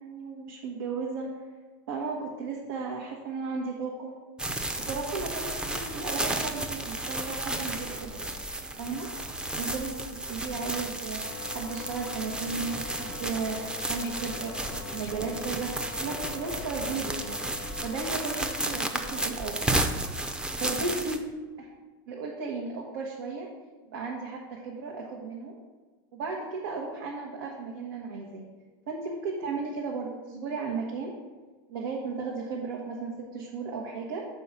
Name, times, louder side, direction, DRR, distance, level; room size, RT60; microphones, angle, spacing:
voice 1, 0.0-1.3 1.9-4.2 4.8-8.3 8.8-9.1 9.6-15.7 16.0-17.4 17.8-19.7 20.6-21.2 22.1-23.5 23.9-25.5 26.1-28.4 28.9-31.1 31.7-34.3, right 4 dB, 85° right, -2 dB, 1.0 m, -35 dB
sound 1, 4.4-21.2, right 2 dB, 5° right, 0.5 m, -33 dB
sound 2, 4.4-19.5, right 2 dB, 35° right, 1.0 m, -50 dB
sound 3, 11.2-18.9, left 9 dB, 90° left, 0.6 m, -44 dB
5.5 x 4.5 x 5.8 m, 1.4 s
supercardioid pair, 120°, 12 cm